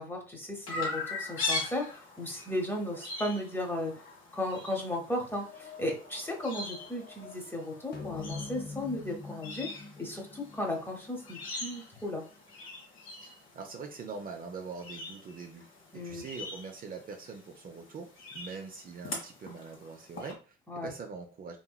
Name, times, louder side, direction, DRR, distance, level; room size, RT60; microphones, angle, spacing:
voice 1, 0.0-4.1 4.3-12.2 15.9-16.2 20.7-20.9, left 1 dB, 10° left, 1 dB, 1.0 m, -35 dB
Chirp tweet, 0.7-20.3, left 3 dB, 75° left, 1.3 m, -42 dB
sound 1, 5.2-9.2, left 6 dB, 90° left, 1.5 m, -53 dB
sound 2, 7.9-12.5, left 3 dB, 55° left, 0.7 m, -44 dB
voice 2, 13.2-15.6 15.9-21.6, right 4 dB, 45° right, 4 dB, 0.5 m, -43 dB
2.9 x 2.8 x 2.3 m, 0.35 s
cardioid pair, 90°, 20 cm